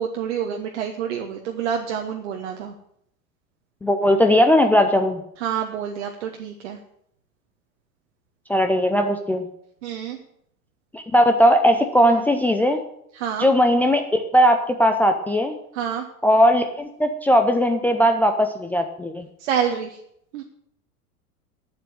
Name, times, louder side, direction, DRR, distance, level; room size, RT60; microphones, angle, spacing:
voice 1, 0.0-2.7 5.4-6.8 9.8-10.2 13.1-13.5 15.7-16.1 19.4-20.0 20.3-20.4, right 8 dB, 50° right, 3 dB, 1.2 m, -27 dB
voice 2, 3.8-5.2 8.5-9.5 10.9-12.8 13.4-14.0 14.3-15.6 16.2-19.3, equal, 5° left, 5 dB, 0.4 m, -18 dB
8.8 x 7.5 x 9.1 m, 0.72 s
figure-of-eight pair, 85°, 44 cm